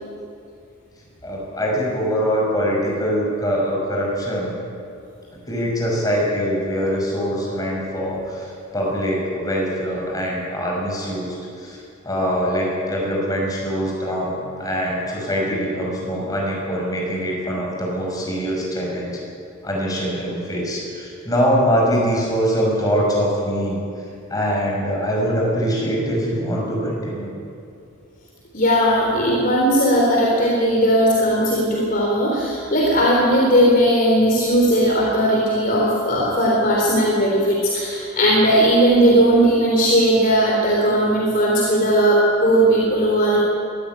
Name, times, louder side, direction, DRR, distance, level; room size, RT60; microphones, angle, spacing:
voice 1, 1.2-4.5 5.3-19.2 19.6-23.8 24.3-27.3, equal, 15° left, -3 dB, 6.4 m, -23 dB
voice 2, 28.5-43.4, equal, 40° left, -3 dB, 3.8 m, -17 dB
22.5 x 14.5 x 9.4 m, 2.5 s
head